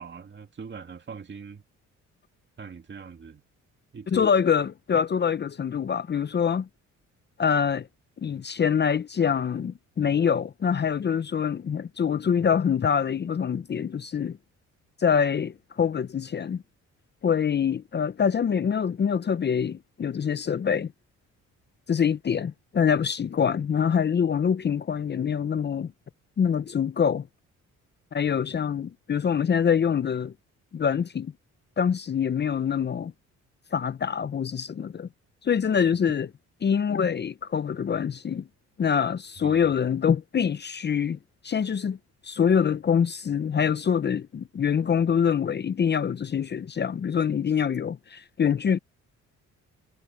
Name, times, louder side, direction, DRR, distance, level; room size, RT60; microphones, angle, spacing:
voice 1, 0.0-1.6 2.6-3.4 3.9-4.3 39.4-39.7, right 5 dB, 40° right, 2.3 m, -42 dB
voice 2, 4.1-6.7 7.4-7.9 8.2-14.4 15.0-16.6 17.2-20.9 21.9-25.9 26.4-27.3 28.1-30.3 30.7-31.3 31.8-33.1 33.7-35.1 35.4-36.3 36.6-38.5 38.8-41.2 41.4-42.0 42.2-48.8, left 7 dB, 35° left, 0.7 m, -25 dB
cardioid pair, 90°, 30 cm